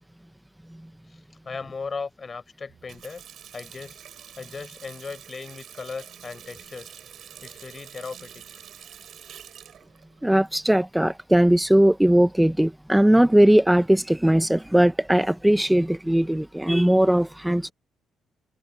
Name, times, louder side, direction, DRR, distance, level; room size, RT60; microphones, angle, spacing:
voice 1, 1.4-3.2 3.5-4.0 4.4-7.0 7.4-8.4, left 4 dB, 35° left, 6.2 m, -37 dB
Water tap faucet, 2.7-11.1, right 9 dB, 65° right, 3.3 m, -46 dB
voice 2, 10.2-17.7, right 1 dB, 5° right, 1.0 m, -19 dB
cardioid pair, 90°, 0 cm